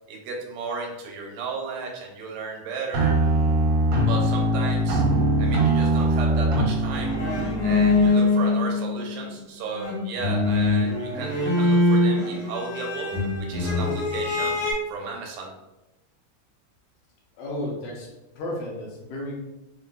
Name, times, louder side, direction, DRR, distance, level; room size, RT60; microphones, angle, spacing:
voice 1, 0.1-3.2 4.0-5.0 5.4-7.2 7.6-13.1 13.4-14.6 14.9-15.5, right 4 dB, 90° right, 0 dB, 2.4 m, -34 dB
sound 1, 2.9-8.1, right 1 dB, 75° right, 1.4 m, -22 dB
sound 2, 6.9-9.4 9.7-14.7, left 2 dB, 60° left, 2.6 m, -23 dB
voice 2, 17.4-18.1 18.4-19.4, left 1 dB, 85° left, -2 dB, 2.6 m, -32 dB
6.4 x 2.6 x 2.2 m, 1.0 s
omnidirectional pair, 3.8 m